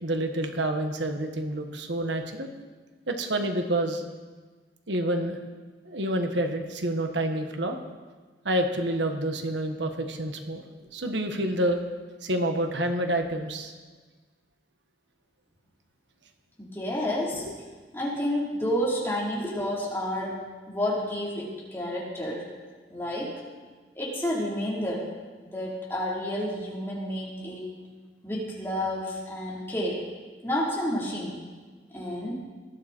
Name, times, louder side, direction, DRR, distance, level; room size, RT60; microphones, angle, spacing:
voice 1, 0.0-2.5 3.1-4.0 4.9-5.4 5.8-7.8 8.4-10.6 10.9-11.8 12.2-13.7, right 1 dB, 85° right, 5 dB, 1.5 m, -28 dB
voice 2, 16.6-17.4 17.9-20.4 20.7-22.5 22.9-23.3 24.0-25.1 25.4-27.7 28.2-30.0 30.4-31.4 31.9-32.3, left 1 dB, 15° left, -6 dB, 4.0 m, -30 dB
20.0 x 13.0 x 4.5 m, 1.4 s
head